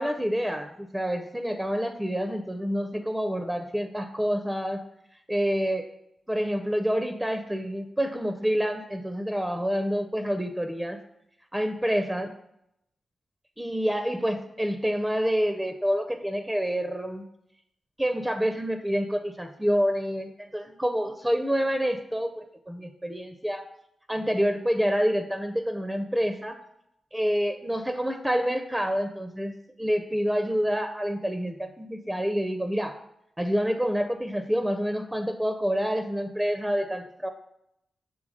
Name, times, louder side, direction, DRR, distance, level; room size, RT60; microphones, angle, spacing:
voice 1, 0.0-4.8 5.3-5.9 6.3-11.0 11.5-12.3 13.6-17.2 18.0-23.6 24.1-26.6 27.1-29.5 29.8-33.0 33.4-37.3, equal, 10° right, 7 dB, 0.5 m, -27 dB
6.2 x 3.5 x 5.0 m, 0.79 s
supercardioid pair, 50°, 0 cm